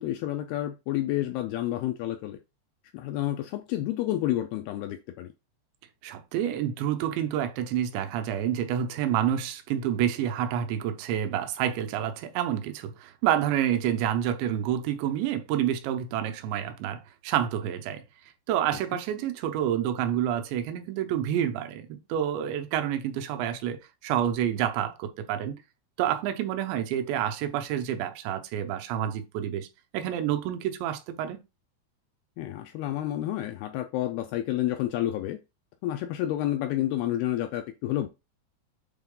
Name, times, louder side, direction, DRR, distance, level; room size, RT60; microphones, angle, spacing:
voice 1, 0.0-2.4 2.9-5.3 32.4-35.4 35.8-38.1, left 13 dB, 85° left, 2.2 m, -29 dB
voice 2, 6.0-18.0 18.5-25.6 26.0-29.7 29.9-31.4, right 10 dB, 90° right, 3.1 m, -28 dB
8.1 x 3.8 x 3.7 m
omnidirectional pair, 4.9 m